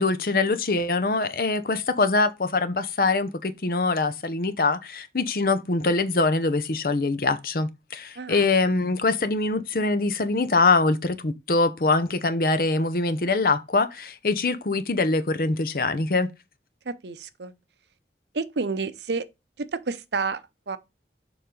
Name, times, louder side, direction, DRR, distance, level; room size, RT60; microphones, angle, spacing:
voice 1, 0.0-16.3, left 3 dB, 55° left, 0.7 m, -23 dB
voice 2, 8.2-8.5 16.8-17.5 18.3-19.3 19.6-20.8, right 4 dB, 75° right, 0.7 m, -30 dB
7.0 x 4.8 x 3.8 m
head